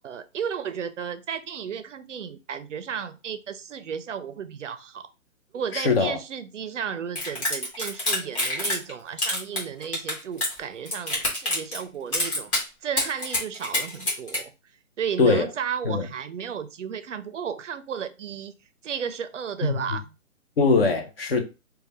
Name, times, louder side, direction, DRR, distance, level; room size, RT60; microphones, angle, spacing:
voice 1, 0.0-5.1 5.5-14.5 15.0-18.5 18.8-20.1, right 7 dB, 60° right, 0.5 m, -33 dB
voice 2, 5.7-6.2 15.2-15.5 15.8-16.1 19.6-20.0 20.6-21.4, left 4 dB, 45° left, 0.7 m, -22 dB
sound 1, 7.2-8.9 9.2-10.6 10.9-11.8 12.1-12.6 13.0-14.4, left 1 dB, 20° left, 1.0 m, -26 dB
3.2 x 2.3 x 4.0 m
hypercardioid pair, 160°, 42 cm